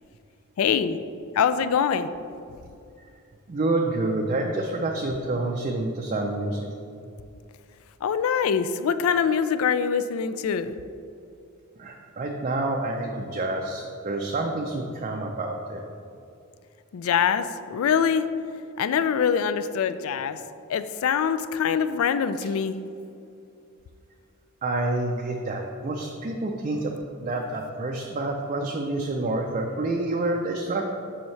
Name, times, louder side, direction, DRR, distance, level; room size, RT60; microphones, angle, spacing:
voice 1, 0.6-1.0 1.3-2.1 8.0-10.7 16.9-17.5 17.7-18.3 18.8-20.4 20.7-22.8, left 7 dB, 65° left, 12 dB, 0.3 m, -24 dB
voice 2, 3.5-6.7 11.8-15.8 24.6-26.9 27.2-30.8, right 2 dB, 35° right, 1 dB, 0.4 m, -28 dB
7.1 x 5.6 x 3.2 m, 2.5 s
head